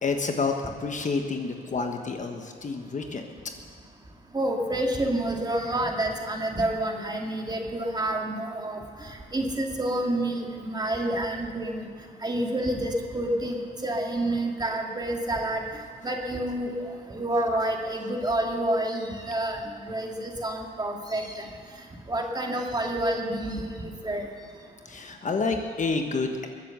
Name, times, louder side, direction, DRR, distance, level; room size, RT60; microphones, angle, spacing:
voice 1, 0.0-3.2 24.8-26.5, left 4 dB, 40° left, 4 dB, 1.4 m, -29 dB
voice 2, 4.3-11.9 12.2-15.6 16.0-16.7 17.1-19.6 19.8-21.5 22.1-23.7 24.0-24.2, right 1 dB, 20° right, 1 dB, 2.3 m, -28 dB
21.5 x 8.0 x 6.9 m, 2.1 s
cardioid pair, 90°, 20 cm